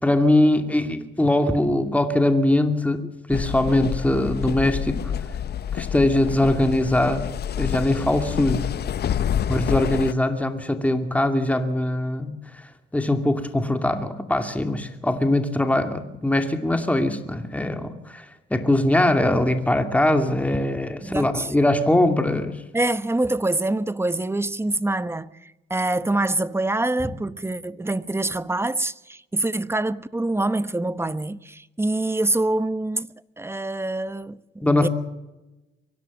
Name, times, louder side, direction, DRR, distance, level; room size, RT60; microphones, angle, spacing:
voice 1, 0.0-5.0 5.7-7.3 7.6-8.7 9.5-12.7 12.9-18.2 18.5-22.6 34.6-34.9, left 1 dB, 5° left, 2.5 m, -22 dB
sound 1, 3.3-10.1, left 9 dB, 55° left, 0.7 m, -28 dB
voice 2, 21.0-21.5 22.7-34.9, right 2 dB, 10° right, 0.9 m, -25 dB
24.0 x 16.5 x 7.4 m
cardioid pair, 90°, 20 cm